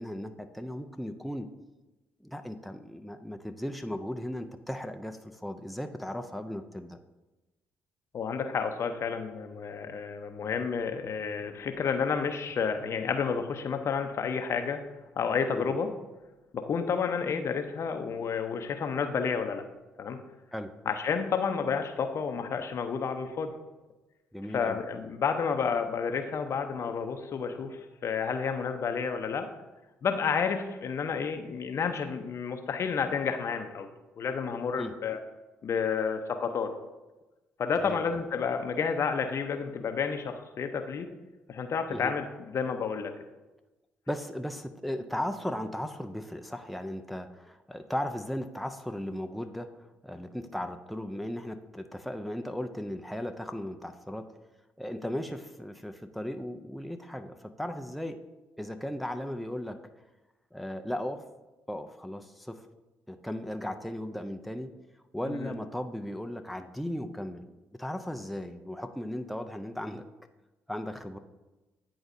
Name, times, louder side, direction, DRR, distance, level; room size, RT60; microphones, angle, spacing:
voice 1, 0.0-1.5 2.2-7.0 15.6-15.8 20.5-20.7 24.3-24.8 34.8-34.9 37.8-38.0 41.9-42.1 44.1-54.2 54.8-58.2 58.6-59.8 60.5-61.2 61.7-62.6 63.1-64.7 65.1-70.1 70.7-71.2, left 1 dB, ahead, 7 dB, 0.5 m, -36 dB
voice 2, 8.1-14.9 15.2-15.9 16.5-19.6 20.0-20.2 20.9-23.5 24.5-29.5 30.0-35.2 35.6-36.7 37.6-41.1 41.5-43.1 65.3-65.5, left 6 dB, 55° left, 7 dB, 0.6 m, -30 dB
9.7 x 3.9 x 2.6 m, 1.1 s
hypercardioid pair, 50°, 6 cm